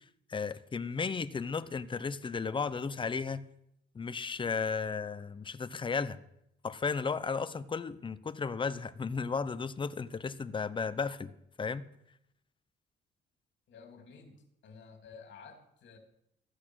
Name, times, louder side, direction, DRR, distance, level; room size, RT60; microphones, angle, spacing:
voice 1, 0.3-3.4 3.9-6.2 6.6-11.3 11.6-11.9, left 5 dB, 25° left, 13 dB, 0.7 m, -34 dB
voice 2, 13.7-16.0, left 5 dB, 65° left, 4 dB, 2.8 m, -52 dB
14.5 x 8.4 x 6.3 m, 0.80 s
cardioid pair, 105°, 20 cm